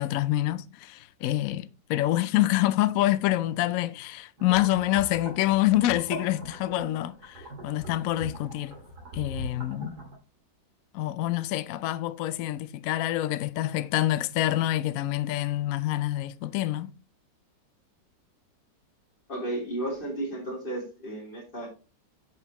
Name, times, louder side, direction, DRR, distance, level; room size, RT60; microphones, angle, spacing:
voice 1, 0.0-8.8 9.1-10.0 10.9-16.9, left 15 dB, 75° left, 0.8 m, -26 dB
sound 1, 4.4-10.2, right 1 dB, 60° right, 2.7 m, -41 dB
voice 2, 19.3-21.7, right 1 dB, 30° left, 3.3 m, -33 dB
8.1 x 5.4 x 3.0 m
omnidirectional pair, 2.0 m